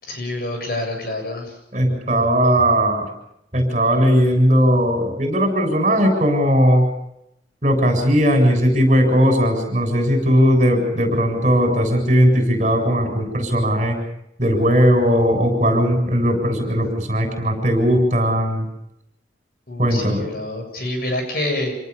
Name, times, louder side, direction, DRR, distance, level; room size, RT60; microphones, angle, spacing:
voice 1, 0.0-1.6 19.7-21.8, left 1 dB, 55° left, 4 dB, 7.7 m, -27 dB
voice 2, 1.7-3.1 3.5-6.9 7.6-14.0 14.4-18.7 19.8-20.2, equal, 40° right, 4 dB, 7.5 m, -18 dB
28.0 x 19.0 x 7.0 m, 0.80 s
head